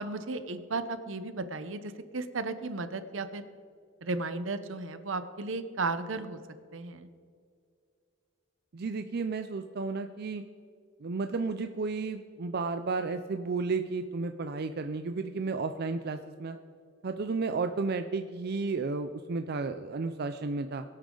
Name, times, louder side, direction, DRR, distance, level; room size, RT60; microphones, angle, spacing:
voice 1, 0.0-3.5 4.0-6.4 6.7-7.1, right 3 dB, 75° right, 11 dB, 0.9 m, -34 dB
voice 2, 8.7-10.4 11.0-16.6 17.0-20.8, right 4 dB, 55° right, 8 dB, 0.5 m, -32 dB
22.0 x 8.8 x 3.9 m, 2.3 s
head